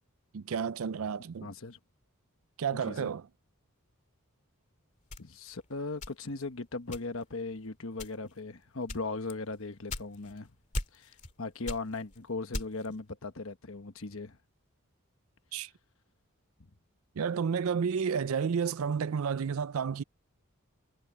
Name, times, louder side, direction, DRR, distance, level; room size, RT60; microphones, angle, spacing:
voice 1, 0.3-1.5 2.6-3.3 15.5-15.7 17.2-20.0, right 6 dB, 70° right, 0.4 m, -31 dB
voice 2, 1.4-1.8 2.8-3.1 5.2-10.5 10.9-14.4, left 3 dB, 65° left, 1.2 m, -38 dB
sound 1, 5.1-6.5 6.9-7.4 7.9-8.4 8.9-10.4 10.7-11.3 11.6-13.0, left 2 dB, 35° left, 2.4 m, -39 dB
head